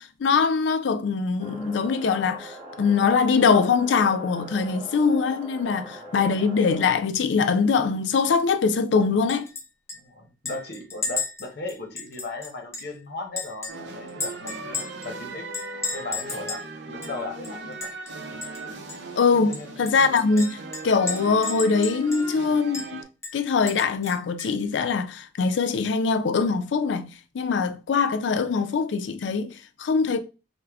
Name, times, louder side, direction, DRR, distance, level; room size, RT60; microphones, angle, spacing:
voice 1, 0.0-9.5 19.2-23.0 23.3-30.2, left 5 dB, 80° left, 0.4 m, -23 dB
sound 1, 1.4-6.9, right 1 dB, 35° right, 1.4 m, -41 dB
voice 2, 5.7-6.1 9.9-15.5 15.9-17.9 19.5-19.7, left 2 dB, 60° left, 0.8 m, -37 dB
Chink clink, 9.3-9.6 9.9-10.0 10.5-13.0 13.4-15.1 15.5-16.7 17.0-17.1 17.4-18.1 18.4-18.6 18.9-19.0 19.5-22.4 22.7-22.9 23.2-24.6, left 4 dB, 15° left, 0.5 m, -34 dB
sound 2, 13.7-23.0, right 3 dB, 70° right, 0.6 m, -38 dB
3.4 x 2.1 x 3.4 m
head